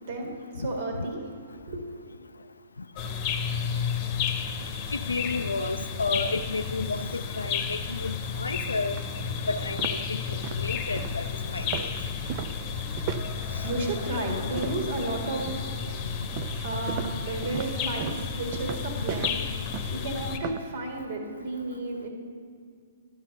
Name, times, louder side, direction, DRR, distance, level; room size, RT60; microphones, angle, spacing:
voice 1, 0.0-1.2 1.5-1.9 13.1-13.3 13.6-15.6 16.6-19.4 19.9-22.1, right 2 dB, 55° right, 2 dB, 1.9 m, -33 dB
sound 1, 3.0-20.4, left 6 dB, 35° left, 1.0 m, -32 dB
voice 2, 4.9-9.0 9.5-11.3 11.5-11.9 13.5-13.6, left 3 dB, 80° left, 10 dB, 0.4 m, -32 dB
sound 2, 9.0-9.1 9.5-15.0 15.4-15.8 16.4-20.7, right 10 dB, 40° right, 0.4 m, -37 dB
12.0 x 5.7 x 6.6 m, 2.2 s
figure-of-eight pair, 120°, 0 cm